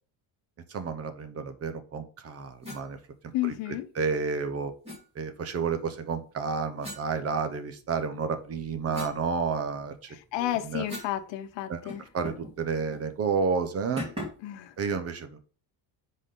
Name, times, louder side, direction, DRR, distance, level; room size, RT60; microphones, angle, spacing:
voice 1, 0.7-3.0 3.4-4.7 5.2-10.1 10.4-10.8 11.7-11.8 12.1-14.0 14.8-15.4, right 5 dB, 35° right, 0.8 m, -31 dB
sound 1, 2.6-2.9 4.8-5.0 6.8-7.8 8.3-11.2 11.5-11.6 11.9-12.6 12.9-13.1 14.0-14.5, left 1 dB, 15° right, 2.9 m, -41 dB
voice 2, 3.3-3.9 10.1-12.0 14.4-14.7, left 14 dB, 75° left, 0.9 m, -32 dB
10.0 x 4.3 x 3.8 m
cardioid pair, 165°, 44 cm